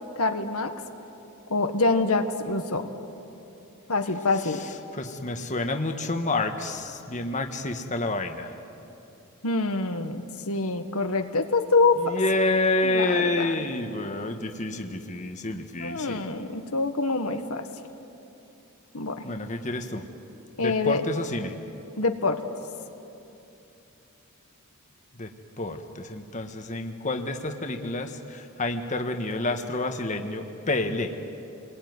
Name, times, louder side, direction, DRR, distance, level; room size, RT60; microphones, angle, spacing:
voice 1, 0.1-0.7 1.5-2.9 3.9-4.6 9.4-12.1 12.8-13.5 15.8-17.7 18.9-19.3 20.6-21.0 22.0-22.4, left 3 dB, 75° left, 6 dB, 1.5 m, -25 dB
voice 2, 4.4-8.5 12.0-16.2 19.2-20.0 20.6-21.6 25.1-31.1, left 2 dB, 35° left, 5 dB, 1.4 m, -29 dB
28.0 x 21.5 x 9.5 m, 2.9 s
head